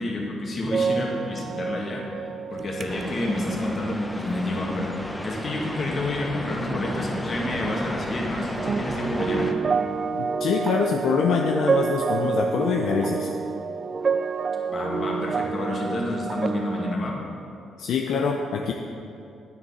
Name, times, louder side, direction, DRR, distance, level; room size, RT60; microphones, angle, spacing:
voice 1, 0.0-2.0 2.5-9.5 14.7-17.2, left 1 dB, 45° left, -2 dB, 2.0 m, -29 dB
sound 1, 0.7-5.0 5.5-5.7 8.6-17.0, right 5 dB, 40° right, 0.3 m, -28 dB
sound 2, 2.9-9.5, equal, 5° left, 0.8 m, -34 dB
voice 2, 10.1-13.3 17.8-18.7, left 5 dB, 70° left, 2 dB, 0.6 m, -24 dB
9.3 x 6.5 x 5.5 m, 2.6 s
cardioid pair, 90°, 0 cm